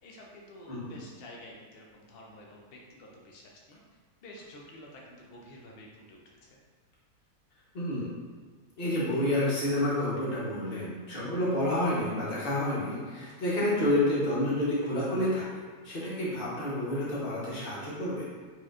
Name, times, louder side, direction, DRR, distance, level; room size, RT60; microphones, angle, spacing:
voice 1, 0.0-3.8 4.2-6.6, left 1 dB, 90° left, -1 dB, 0.5 m, -50 dB
voice 2, 0.7-1.0 7.7-8.1 8.8-15.5 15.8-18.3, left 1 dB, 40° left, -7 dB, 1.1 m, -29 dB
4.3 x 3.1 x 2.4 m, 1.5 s
omnidirectional pair, 1.6 m